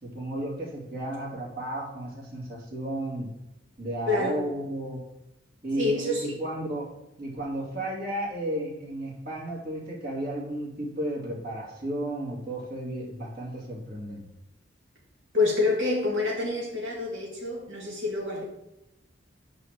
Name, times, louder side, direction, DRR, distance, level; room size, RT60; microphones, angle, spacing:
voice 1, 0.0-3.3 3.8-5.0 5.6-6.9 7.2-14.3, right 1 dB, 55° right, -2 dB, 2.6 m, -33 dB
voice 2, 4.1-4.4 5.8-6.3 15.3-18.4, left 3 dB, 80° right, -3 dB, 1.9 m, -27 dB
8.6 x 4.1 x 6.5 m, 0.90 s
head